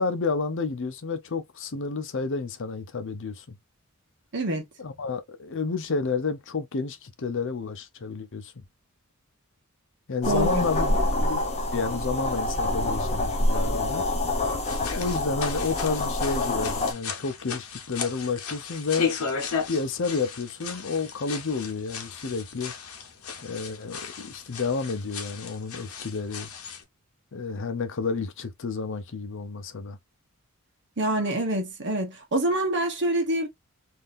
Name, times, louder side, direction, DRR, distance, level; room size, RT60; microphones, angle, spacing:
voice 1, 0.0-3.6 4.8-8.5 10.1-11.4 11.7-14.0 14.9-19.1 19.7-22.7 23.4-26.5 27.3-30.0, left 4 dB, 55° left, 0.7 m, -30 dB
voice 2, 4.3-4.7 10.3-10.7 31.0-33.5, right 1 dB, 55° right, 1.1 m, -26 dB
sound 1, 10.2-16.9, left 1 dB, 30° left, 0.9 m, -26 dB
sound 2, 14.6-26.8, left 6 dB, 75° left, 1.0 m, -35 dB
3.5 x 2.7 x 2.5 m
head